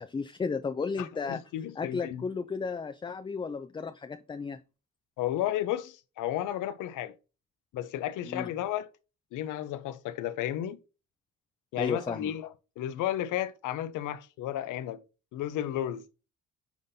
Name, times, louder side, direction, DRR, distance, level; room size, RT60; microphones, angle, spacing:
voice 1, 0.0-1.4 1.8-4.6 8.3-8.5 11.8-12.3, left 5 dB, 15° left, 0.4 m, -34 dB
voice 2, 1.0-2.2 5.2-7.1 7.7-8.9 9.3-10.8 11.7-12.5 12.8-15.0 15.3-16.1, left 12 dB, 85° left, 0.6 m, -33 dB
9.2 x 3.9 x 2.7 m
cardioid pair, 90°, 30 cm